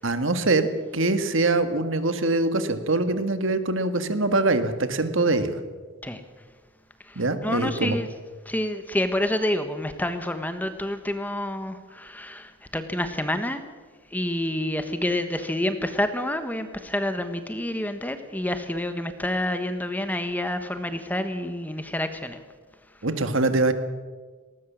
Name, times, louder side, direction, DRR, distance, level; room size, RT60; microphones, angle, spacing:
voice 1, 0.0-0.7 0.9-5.6 7.2-8.0 23.0-23.7, right 2 dB, 70° right, 9 dB, 1.7 m, -23 dB
voice 2, 7.0-8.1 8.4-13.6 14.1-22.4, left 1 dB, 10° left, 9 dB, 1.2 m, -28 dB
19.5 x 18.5 x 7.4 m, 1.4 s
head